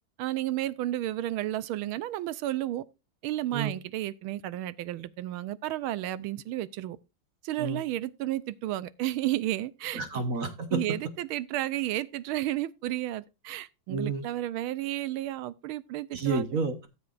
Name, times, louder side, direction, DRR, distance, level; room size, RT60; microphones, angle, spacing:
voice 1, 0.2-2.8 3.2-7.0 7.4-10.2 10.7-16.4, right 14 dB, 90° right, 1.5 m, -32 dB
voice 2, 9.9-10.8 13.9-14.2 16.1-16.9, right 4 dB, 45° right, 1.6 m, -30 dB
17.5 x 7.3 x 2.5 m
omnidirectional pair, 2.2 m